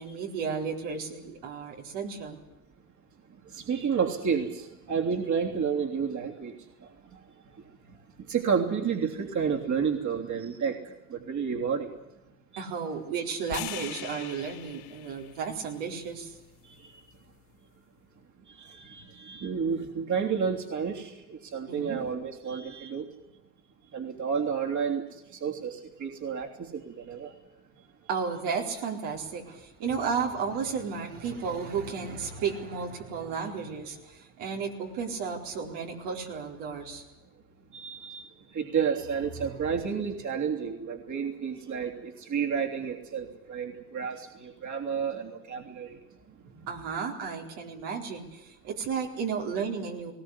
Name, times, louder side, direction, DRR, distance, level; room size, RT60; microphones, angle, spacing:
voice 1, 0.0-2.4 12.6-16.4 21.7-22.0 28.1-37.0 39.4-39.6 46.4-50.1, right 6 dB, 80° right, 1 dB, 4.3 m, -33 dB
voice 2, 3.5-6.5 8.3-11.9 18.6-23.1 23.9-25.0 25.3-27.3 37.7-38.3 38.5-46.0, right 6 dB, 45° right, 2 dB, 3.3 m, -30 dB
sound 1, 13.5-17.7, left 13 dB, 70° left, 3.3 m, -43 dB
20.0 x 18.0 x 9.9 m, 0.97 s
supercardioid pair, 80°, 41 cm